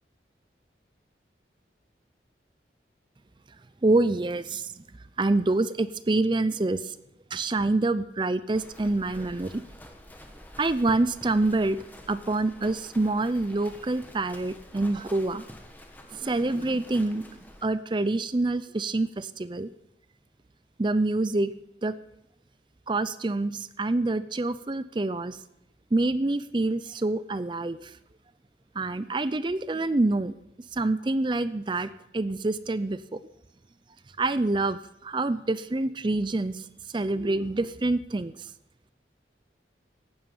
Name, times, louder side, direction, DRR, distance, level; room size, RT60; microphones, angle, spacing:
voice 1, 3.8-4.8 5.2-7.0 7.3-9.6 10.6-11.8 12.1-15.4 16.1-19.7 20.8-21.5 21.8-22.0 22.9-25.4 25.9-28.0 28.8-30.4 30.7-33.2 34.2-36.7 36.9-38.5, right 2 dB, 25° right, 15 dB, 0.5 m, -26 dB
Livestock farm animals working animals, 8.5-17.6, left 1 dB, 10° left, 1.3 m, -48 dB
15.0 x 11.0 x 5.5 m, 0.82 s
head